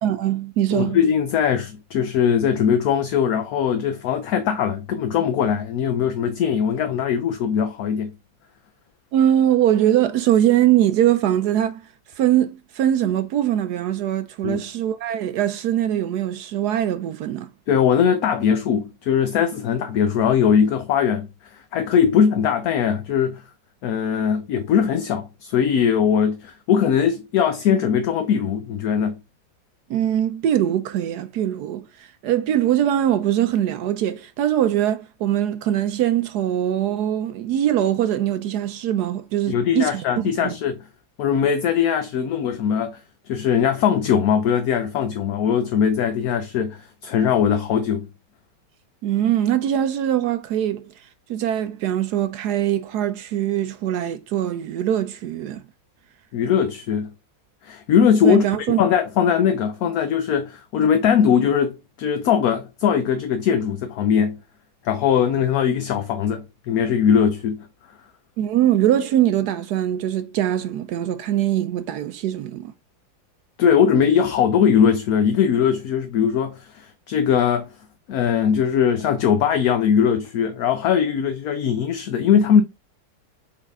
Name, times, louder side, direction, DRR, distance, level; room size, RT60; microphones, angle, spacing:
voice 1, 0.0-1.0 9.1-17.5 29.9-40.5 49.0-55.6 58.2-58.8 68.4-72.7, right 11 dB, 70° right, 1.0 m, -22 dB
voice 2, 0.7-8.1 14.4-14.6 17.7-21.3 21.7-23.4 23.8-29.2 39.5-40.8 41.2-43.0 43.3-48.1 56.3-57.1 57.6-58.4 58.8-64.4 64.8-67.7 73.6-77.7 78.1-82.6, left 7 dB, 65° left, 1.0 m, -20 dB
7.2 x 3.9 x 3.5 m
omnidirectional pair, 2.0 m